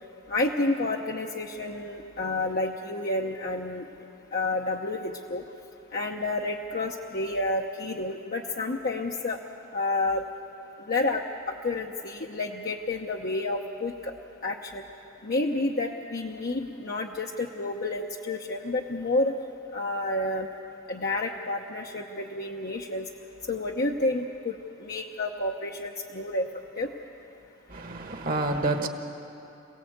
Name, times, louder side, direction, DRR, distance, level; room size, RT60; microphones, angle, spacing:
voice 1, 0.3-3.8 4.3-5.4 5.9-9.4 9.7-10.2 10.9-14.1 14.4-14.8 15.2-19.3 19.7-20.5 20.9-23.1 23.5-24.5 24.8-26.5 26.8-26.9, left 2 dB, 50° left, 0 dB, 0.9 m, -30 dB
voice 2, 27.7-28.9, right 2 dB, 45° right, 5 dB, 1.4 m, -28 dB
26.5 x 17.5 x 8.0 m, 3.0 s
head